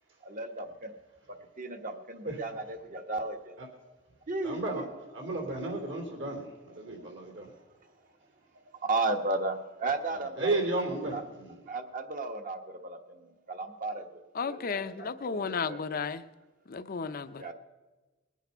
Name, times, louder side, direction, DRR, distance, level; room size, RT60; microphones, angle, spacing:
voice 1, 0.2-0.9 1.3-3.6 4.3-4.9 6.8-6.9 7.4-7.9 8.7-10.7 11.0-11.2 11.7-15.8 17.4-17.5, right 2 dB, 45° right, 6 dB, 1.2 m, -35 dB
voice 2, 4.4-4.8 5.1-7.5 10.3-11.6, right 2 dB, 65° right, 2 dB, 3.1 m, -33 dB
voice 3, 14.4-16.2 16.7-17.4, left 5 dB, 50° left, 11 dB, 0.6 m, -33 dB
20.5 x 8.3 x 5.6 m, 1.2 s
head